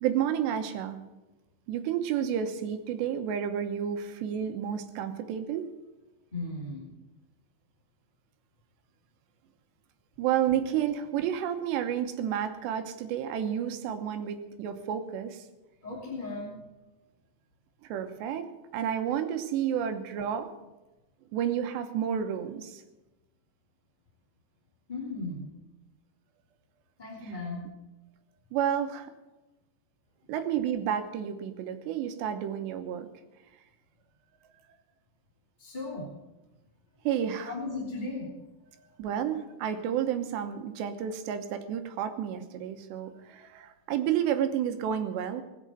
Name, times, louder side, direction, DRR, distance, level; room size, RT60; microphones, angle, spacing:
voice 1, 0.0-1.0 1.7-5.7 10.2-15.5 17.8-18.5 18.7-20.5 21.3-22.8 28.5-29.1 30.3-33.1 37.0-37.5 38.7-45.4, right 9 dB, 80° right, 8 dB, 3.1 m, -31 dB
voice 2, 6.3-6.9 15.8-16.7 24.9-25.5 27.0-27.7 35.6-36.1 37.4-38.3, left 3 dB, 15° left, -4 dB, 2.1 m, -36 dB
19.5 x 8.4 x 7.7 m, 1.1 s
omnidirectional pair, 5.2 m